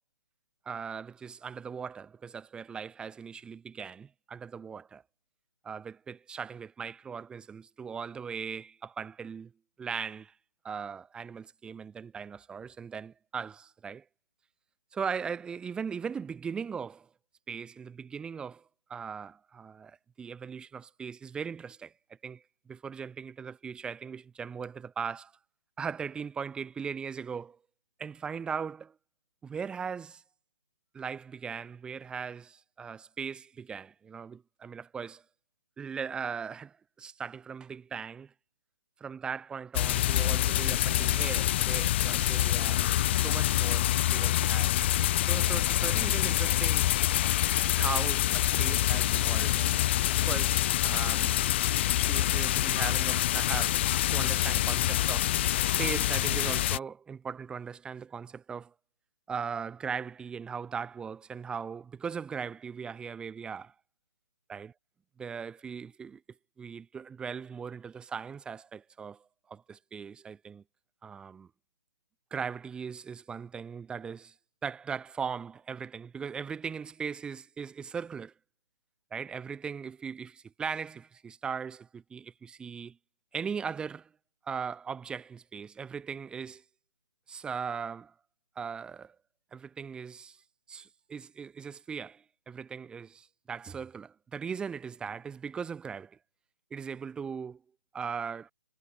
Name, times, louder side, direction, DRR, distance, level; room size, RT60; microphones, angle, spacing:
voice 1, 0.6-5.0 5.6-9.5 9.8-10.3 10.6-14.0 14.9-17.1 17.5-18.6 18.9-21.9 22.2-25.3 25.8-27.6 28.0-28.9 29.4-30.2 30.9-35.2 35.8-38.3 39.0-44.7 45.2-46.9 47.7-49.8 50.3-51.4 52.0-55.4 55.8-58.7 59.3-63.7 64.5-64.7 65.2-66.2 66.6-70.6 71.0-71.5 72.3-74.3 74.6-78.3 79.1-83.0 83.3-84.1 84.4-86.6 87.3-88.1 88.6-89.2 89.5-90.4 90.7-96.2 96.7-97.6 97.9-98.5, right 6 dB, 5° right, 1.0 m, -39 dB
sound 1, 39.7-56.8, left 14 dB, 30° left, 0.4 m, -26 dB
hypercardioid pair, 155°, 12 cm